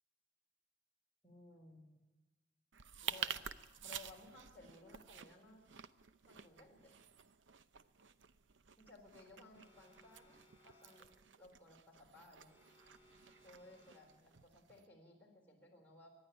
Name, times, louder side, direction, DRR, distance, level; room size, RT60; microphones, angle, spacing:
voice 1, 1.2-2.0 3.0-3.5 3.8-5.6 6.2-6.9 8.8-11.1 11.4-12.5 13.4-16.1, left 2 dB, 10° left, -3 dB, 4.1 m, -60 dB
sound 1, 2.7-14.8, right 8 dB, 85° right, 0.7 m, -50 dB
Alarm, 9.5-11.3 12.5-14.3, equal, 10° right, 4.6 m, -68 dB
24.0 x 11.0 x 9.9 m, 1.2 s
head